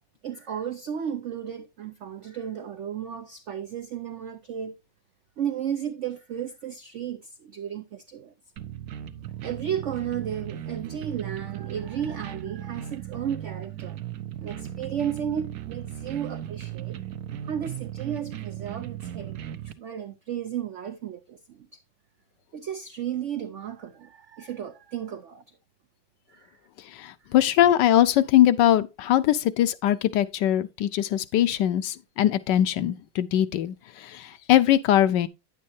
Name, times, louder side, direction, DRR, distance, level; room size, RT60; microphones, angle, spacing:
voice 1, 0.2-4.7 5.4-8.3 9.4-14.0 14.4-17.0 17.4-21.8 22.5-25.4 26.3-26.6, right 9 dB, 85° right, 0.6 m, -34 dB
sound 1, 8.6-19.7, right 11 dB, 65° right, 0.9 m, -37 dB
voice 2, 26.9-35.3, left 12 dB, 75° left, 1.3 m, -21 dB
9.6 x 8.4 x 2.7 m
omnidirectional pair, 2.0 m